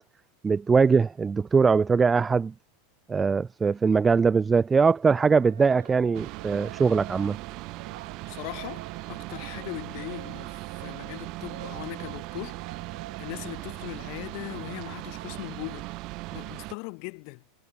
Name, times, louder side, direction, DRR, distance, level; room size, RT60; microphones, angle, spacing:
voice 1, 0.4-2.5 3.1-7.4, right 5 dB, 10° right, 0.5 m, -21 dB
sound 1, 5.1-15.5, right 13 dB, 90° right, 5.9 m, -48 dB
sound 2, 6.1-16.7, right 22 dB, 35° right, 2.8 m, -39 dB
voice 2, 8.3-12.6 13.2-15.9 16.3-17.4, left 40 dB or more, 40° left, 2.9 m, -39 dB
supercardioid pair, 175°, 0 cm